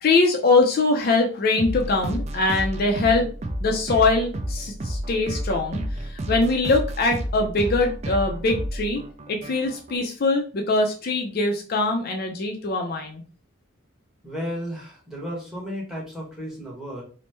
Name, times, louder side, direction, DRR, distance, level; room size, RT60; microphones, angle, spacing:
voice 1, 0.0-3.3 3.6-13.2, left 3 dB, 50° left, 2 dB, 0.4 m, -22 dB
sound 1, 1.6-10.0, right 1 dB, 35° right, 0.4 m, -31 dB
voice 2, 14.2-17.0, equal, ahead, -3 dB, 1.0 m, -33 dB
3.0 x 2.0 x 3.2 m, 0.39 s
head